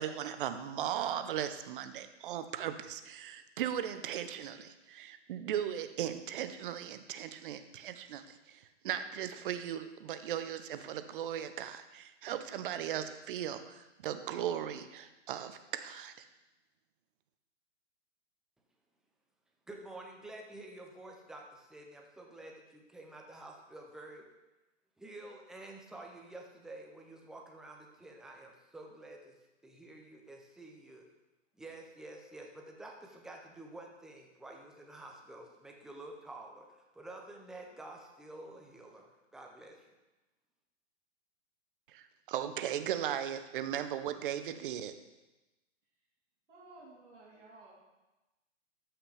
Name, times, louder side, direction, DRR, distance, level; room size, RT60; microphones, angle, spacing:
voice 1, 0.0-16.1 41.9-44.9, right 10 dB, 45° right, 10 dB, 0.7 m, -37 dB
voice 2, 19.7-24.2 25.0-29.3 29.6-31.1 31.6-39.9, right 2 dB, ahead, 1 dB, 0.4 m, -49 dB
voice 3, 46.5-47.7, right 2 dB, 85° right, -7 dB, 3.2 m, -54 dB
13.5 x 5.9 x 3.3 m, 1.1 s
hypercardioid pair, 130°, 36 cm